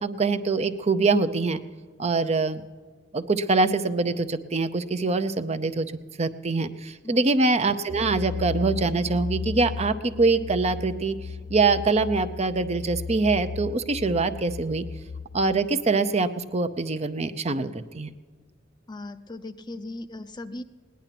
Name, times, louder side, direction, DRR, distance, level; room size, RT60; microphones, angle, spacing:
voice 1, 0.0-1.6 2.0-2.6 3.1-5.9 6.2-11.2 11.5-14.9 15.3-18.1, right 3 dB, 35° right, 10 dB, 0.6 m, -24 dB
sound 1, 7.9-15.4, left 5 dB, 65° left, 0.8 m, -35 dB
voice 2, 18.9-20.6, left 2 dB, 20° left, 10 dB, 0.5 m, -38 dB
18.0 x 10.5 x 5.9 m, 1.5 s
head